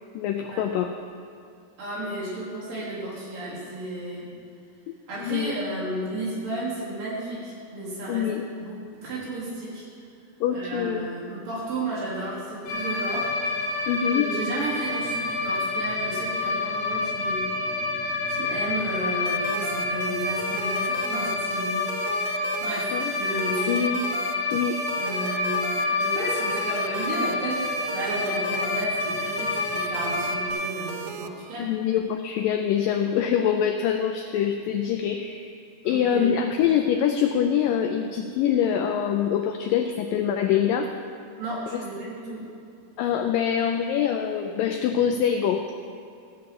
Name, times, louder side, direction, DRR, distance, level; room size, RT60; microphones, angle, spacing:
voice 1, 0.2-0.9 5.2-5.5 8.1-8.4 10.4-11.1 13.9-14.3 22.9-23.1 23.7-24.0 24.5-24.8 31.6-35.5 35.9-40.9 43.0-45.7, left 8 dB, 90° left, 5 dB, 1.9 m, -24 dB
voice 2, 1.8-4.3 5.1-8.3 8.6-9.9 10.5-13.4 14.1-18.0 18.3-22.0 22.6-23.9 24.9-31.8 35.8-36.3 41.4-42.5, right 1 dB, 60° right, -8 dB, 5.2 m, -33 dB
sound 1, 12.7-30.5, left 3 dB, 55° left, 2.9 m, -28 dB
sound 2, 19.2-31.3, right 8 dB, 90° right, 1.9 m, -38 dB
15.0 x 5.8 x 7.6 m, 2.5 s
omnidirectional pair, 4.6 m